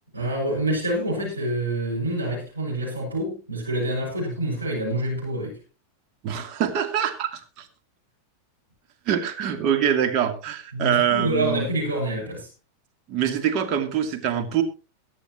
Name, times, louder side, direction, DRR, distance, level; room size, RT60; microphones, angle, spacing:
voice 1, 0.1-5.6 10.7-12.5, right 1 dB, 85° right, 6.9 m, -27 dB
voice 2, 6.2-7.7 9.1-11.7 13.1-14.6, right 9 dB, 40° right, 2.7 m, -24 dB
23.0 x 8.5 x 3.1 m
figure-of-eight pair, 90°, 0 cm